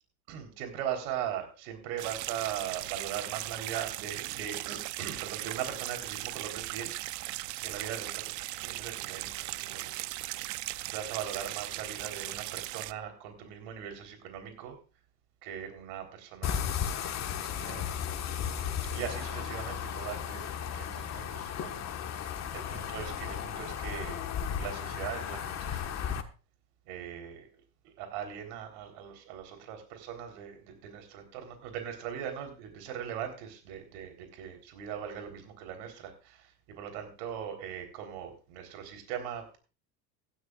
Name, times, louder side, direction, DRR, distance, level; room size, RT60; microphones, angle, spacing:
voice 1, 0.3-6.9 7.6-10.1 10.5-14.8 15.4-18.0 18.9-21.8 22.1-24.3 24.6-26.0 26.9-27.5 27.8-39.6, right 9 dB, 70° right, 5 dB, 3.9 m, -40 dB
sound 1, 2.0-12.9, right 18 dB, 40° right, 0.5 m, -38 dB
sound 2, 16.4-26.2, left 8 dB, 35° left, 1.5 m, -35 dB
16.0 x 13.0 x 2.4 m, 0.34 s
supercardioid pair, 115°, 46 cm